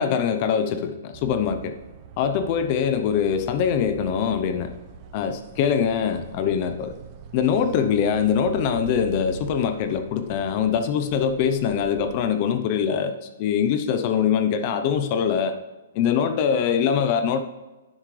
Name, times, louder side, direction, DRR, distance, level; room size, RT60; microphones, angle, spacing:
voice 1, 0.0-1.8 2.2-4.7 5.1-6.9 7.3-15.6 15.9-17.4, left 7 dB, 35° left, 9 dB, 0.6 m, -23 dB
sound 1, 1.1-12.3, right 5 dB, 35° right, 0.8 m, -41 dB
10.0 x 7.6 x 3.2 m, 1.1 s
hypercardioid pair, 150°, 0 cm